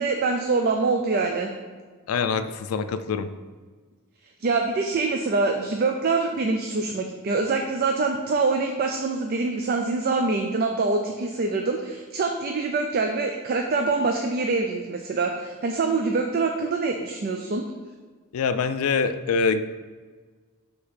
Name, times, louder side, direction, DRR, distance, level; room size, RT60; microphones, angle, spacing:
voice 1, 0.0-1.5 4.4-17.7, right 3 dB, 45° right, 3 dB, 0.4 m, -25 dB
voice 2, 2.1-3.3 18.3-19.6, left 5 dB, 80° left, 11 dB, 0.4 m, -24 dB
6.5 x 2.9 x 5.6 m, 1.5 s
head